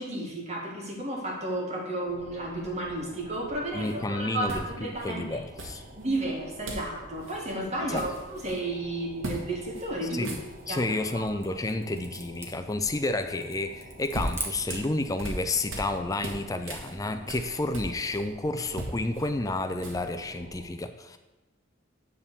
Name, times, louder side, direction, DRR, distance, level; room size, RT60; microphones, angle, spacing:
voice 1, 0.0-5.4 6.0-10.3 10.7-10.8 11.1-11.3, right 1 dB, 35° right, -1 dB, 1.7 m, -32 dB
sound 1, 2.1-20.7, right 1 dB, 50° right, 1.5 m, -49 dB
voice 2, 3.7-5.8 7.9-8.0 10.1-10.4 10.7-21.2, left 2 dB, 15° left, 8 dB, 0.4 m, -30 dB
sound 2, 3.8-3.9 4.5-5.1 5.6-6.2 6.7-6.9 7.2-7.4 7.7-8.6 9.2-9.4 9.7-9.9 10.1-10.9 13.7-15.9 16.2-18.3 18.6-20.2, right 1 dB, 70° right, 1.5 m, -38 dB
sound 3, 10.5-15.0, right 2 dB, 15° right, 1.0 m, -43 dB
9.7 x 3.6 x 6.7 m, 1.1 s
head